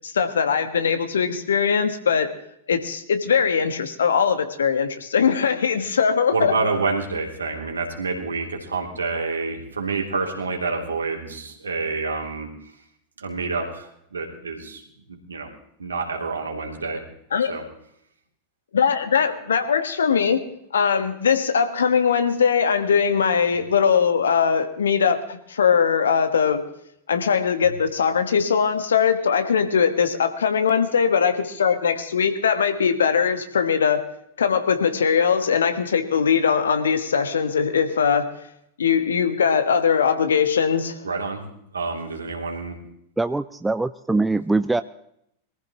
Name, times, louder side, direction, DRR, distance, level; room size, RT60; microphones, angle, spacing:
voice 1, 0.0-2.3 2.7-6.5 17.3-17.5 18.7-20.4 20.7-26.6 27.1-34.0 34.4-38.3 38.8-41.0, left 6 dB, 70° left, 8 dB, 1.5 m, -21 dB
voice 2, 6.3-12.5 13.2-14.8 15.1-15.5 15.8-17.0 17.5-17.6 41.0-41.4 41.7-42.8, right 4 dB, 75° right, 1 dB, 3.0 m, -28 dB
voice 3, 43.2-44.8, right 3 dB, 5° right, 12 dB, 0.4 m, -22 dB
23.0 x 14.5 x 3.0 m, 0.74 s
figure-of-eight pair, 90°, 0 cm